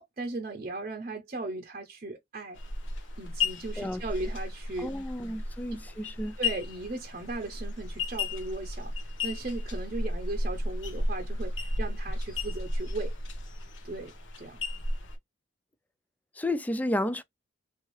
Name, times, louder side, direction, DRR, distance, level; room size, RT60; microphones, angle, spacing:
voice 1, 0.0-2.6 3.2-4.9 5.7-5.8 6.4-8.9 9.2-13.1 13.8-14.6, right 2 dB, 40° right, 0.8 m, -37 dB
sound 1, 2.5-15.2, left 2 dB, 65° left, 0.9 m, -34 dB
voice 2, 4.8-6.4 16.3-17.2, left 1 dB, 10° left, 0.3 m, -32 dB
3.4 x 2.7 x 3.1 m
head